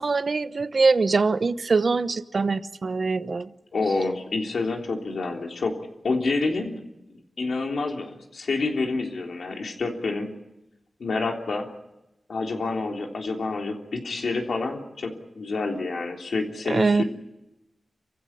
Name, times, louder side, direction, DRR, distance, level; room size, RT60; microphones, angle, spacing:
voice 1, 0.0-3.5 16.7-17.0, right 4 dB, 50° right, 0.9 m, -23 dB
voice 2, 3.7-5.7 6.0-6.7 7.4-10.3 11.0-11.6 12.3-17.0, left 3 dB, 75° left, 3.4 m, -28 dB
27.5 x 15.5 x 9.9 m
wide cardioid pair, 125°, 0 cm